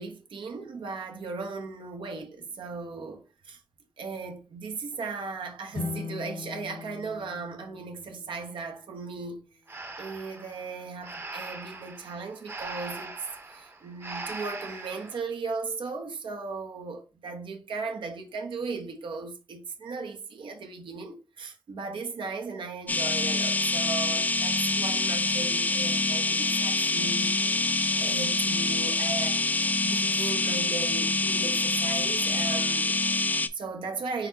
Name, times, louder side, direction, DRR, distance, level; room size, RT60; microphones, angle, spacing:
voice 1, 0.0-3.6 4.0-9.4 10.0-13.1 13.5-29.4 29.8-34.3, right 4 dB, 85° right, 0.9 m, -37 dB
sound 1, 5.7-9.0, left 4 dB, 85° left, 1.4 m, -39 dB
Breathing, 9.7-15.2, right 3 dB, 30° right, 0.7 m, -40 dB
sound 2, 22.9-33.5, left 2 dB, 20° left, 0.4 m, -26 dB
4.2 x 3.9 x 2.7 m
cardioid pair, 80°, 8 cm